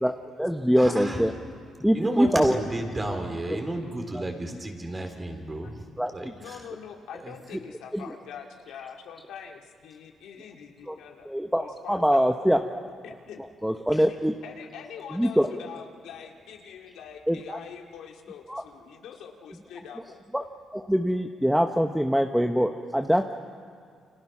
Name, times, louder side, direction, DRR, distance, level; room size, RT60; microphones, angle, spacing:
voice 1, 0.0-1.3 1.8-2.6 4.1-4.2 6.0-6.3 7.9-8.0 10.9-11.0 11.2-12.8 13.6-14.3 15.1-15.5 17.3-17.6 18.5-18.6 20.3-20.4 20.7-23.3, equal, ahead, 5 dB, 1.0 m, -24 dB
voice 2, 0.8-1.2 1.9-5.8 6.1-6.6 7.2-7.3, right 1 dB, 20° right, 4 dB, 4.0 m, -32 dB
voice 3, 6.4-12.5 13.0-13.4 13.9-20.2, left 7 dB, 85° left, 2 dB, 2.4 m, -44 dB
29.5 x 26.0 x 6.1 m, 2.2 s
cardioid pair, 105°, 0 cm